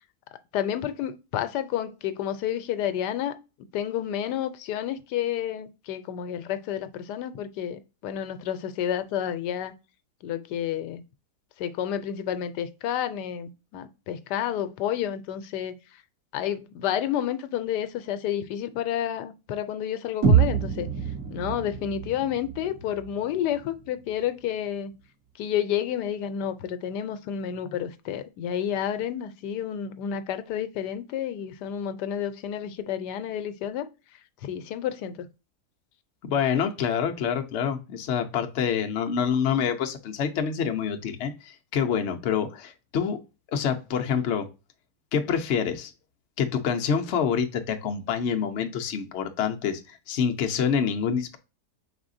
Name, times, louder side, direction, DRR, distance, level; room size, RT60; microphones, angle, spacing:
voice 1, 0.5-3.3 3.7-9.7 10.2-11.0 11.6-15.7 16.3-20.9 21.3-24.9 25.4-33.9 34.4-35.3, left 10 dB, 85° left, 1.2 m, -30 dB
sound 1, 20.2-24.2, right 7 dB, 70° right, 2.2 m, -26 dB
voice 2, 36.2-43.2 43.5-44.5 45.1-45.9 46.4-51.4, left 7 dB, 55° left, 0.8 m, -27 dB
4.8 x 3.6 x 2.5 m
omnidirectional pair, 1.8 m